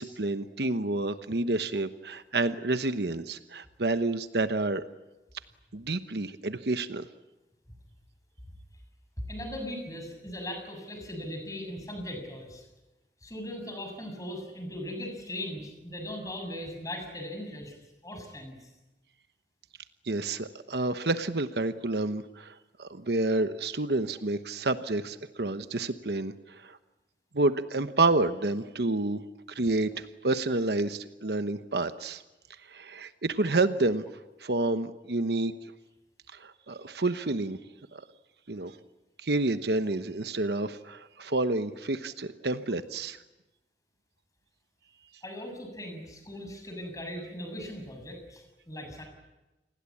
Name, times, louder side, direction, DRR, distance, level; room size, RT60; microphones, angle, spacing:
voice 1, 0.0-4.8 5.7-7.1 20.0-26.8 27.3-29.2 29.5-32.2 32.7-34.0 34.4-35.5 36.3-37.6 37.9-38.0 38.5-38.7 39.2-43.2, right 2 dB, 65° right, 11 dB, 1.1 m, -29 dB
voice 2, 9.3-12.6 13.2-17.8 18.0-18.6 45.2-49.0, left 1 dB, 20° left, 4 dB, 6.8 m, -39 dB
29.0 x 20.5 x 8.6 m, 1.0 s
head